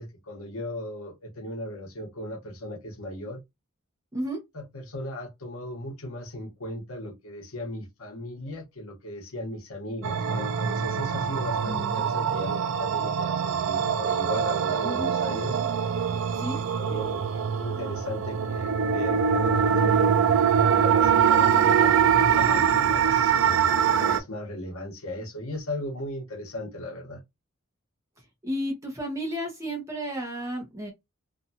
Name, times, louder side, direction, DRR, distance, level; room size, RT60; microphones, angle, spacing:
voice 1, 0.0-3.4 4.5-15.6 16.3-20.1 20.6-27.2, left 1 dB, 75° left, 0.9 m, -37 dB
sound 1, 10.0-24.2, right 7 dB, 60° right, 0.3 m, -23 dB
voice 2, 11.7-12.0 14.8-15.1 16.3-16.6 28.4-30.9, equal, 15° right, 0.6 m, -32 dB
2.7 x 2.2 x 2.7 m
head